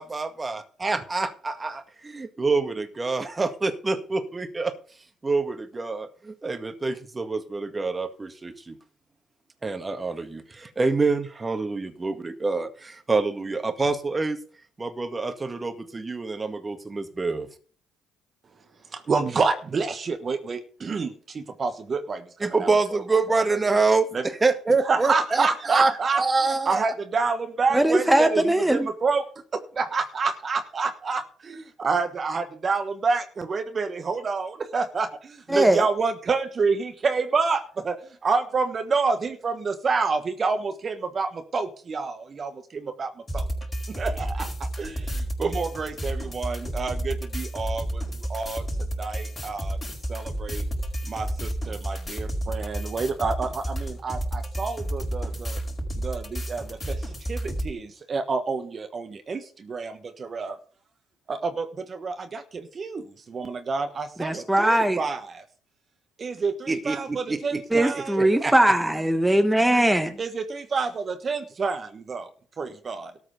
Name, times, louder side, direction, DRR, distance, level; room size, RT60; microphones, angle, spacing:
voice 1, 0.0-4.7 5.2-8.8 9.6-14.4 14.8-17.5 22.4-26.9 66.7-68.5, right 3 dB, 25° right, 1.8 m, -26 dB
voice 2, 18.6-23.4 24.1-24.2 24.8-26.2 26.7-29.3 29.5-43.5 43.9-48.7 49.0-49.8 50.1-50.6 51.0-55.6 56.0-60.6 61.3-65.4 66.2-68.2 70.2-72.3 72.6-73.1, right 4 dB, 40° right, 1.3 m, -28 dB
voice 3, 27.7-28.9 35.5-35.8 64.2-65.0 67.7-70.2, right 1 dB, 5° right, 1.2 m, -20 dB
sound 1, 43.3-57.7, right 1 dB, 20° left, 4.8 m, -31 dB
13.5 x 4.8 x 8.0 m
hypercardioid pair, 55°, 0 cm